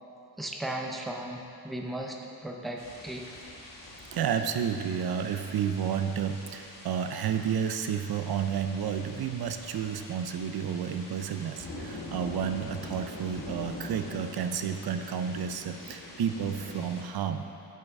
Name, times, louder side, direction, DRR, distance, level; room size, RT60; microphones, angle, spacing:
voice 1, 0.4-3.3, right 1 dB, ahead, 1 dB, 0.5 m, -36 dB
sound 1, 2.8-17.0, left 1 dB, 60° left, 1.2 m, -44 dB
voice 2, 4.1-17.5, right 8 dB, 75° right, 8 dB, 0.5 m, -31 dB
10.5 x 5.7 x 3.5 m, 2.8 s
wide cardioid pair, 155°, 38 cm